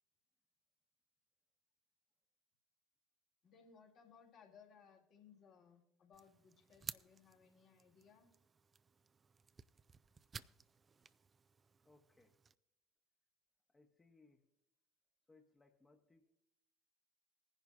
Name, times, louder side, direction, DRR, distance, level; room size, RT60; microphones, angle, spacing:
voice 1, 3.4-8.3, left 6 dB, 55° left, 0 dB, 2.2 m, -64 dB
sound 1, 6.1-12.5, right 5 dB, 30° right, 0.4 m, -55 dB
voice 2, 11.8-12.4 13.7-14.5 15.3-16.3, left 3 dB, 20° left, 2 dB, 1.0 m, -69 dB
20.0 x 10.5 x 2.4 m, 0.78 s
hypercardioid pair, 60°, 0 cm